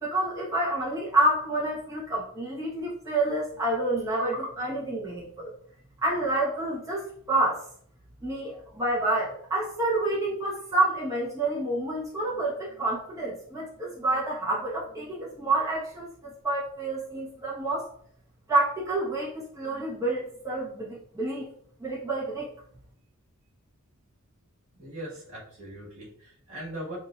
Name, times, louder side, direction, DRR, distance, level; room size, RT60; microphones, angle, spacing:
voice 1, 0.0-5.5 6.0-7.6 8.2-17.9 18.5-21.4 21.8-22.5, right 2 dB, 15° right, -6 dB, 1.3 m, -28 dB
voice 2, 24.8-27.0, right 1 dB, 65° right, -4 dB, 2.0 m, -40 dB
7.3 x 2.8 x 2.5 m, 0.62 s
head